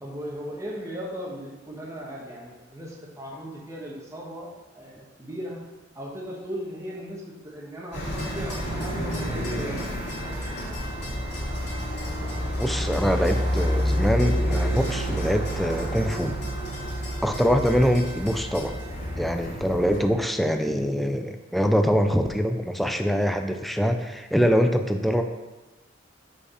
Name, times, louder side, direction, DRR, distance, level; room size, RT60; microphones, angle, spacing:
voice 1, 0.0-5.6 5.9-10.2, equal, 15° right, -3 dB, 1.2 m, -37 dB
sound 1, 7.9-20.0, equal, 60° left, 2.3 m, -29 dB
voice 2, 12.6-16.3 17.2-18.7 19.2-25.2, equal, ahead, 6 dB, 0.3 m, -24 dB
5.0 x 4.7 x 4.9 m, 1.1 s
head